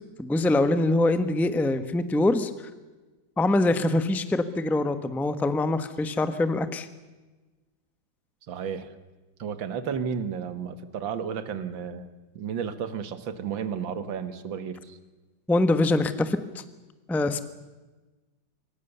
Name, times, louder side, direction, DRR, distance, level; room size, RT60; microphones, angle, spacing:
voice 1, 0.2-2.5 3.4-6.9 15.5-16.6 17.1-17.4, left 2 dB, ahead, 11 dB, 0.8 m, -24 dB
voice 2, 8.5-8.9 9.4-12.1 12.4-15.0, right 7 dB, 75° right, 12 dB, 2.2 m, -32 dB
26.5 x 24.0 x 6.9 m, 1.2 s
omnidirectional pair, 2.1 m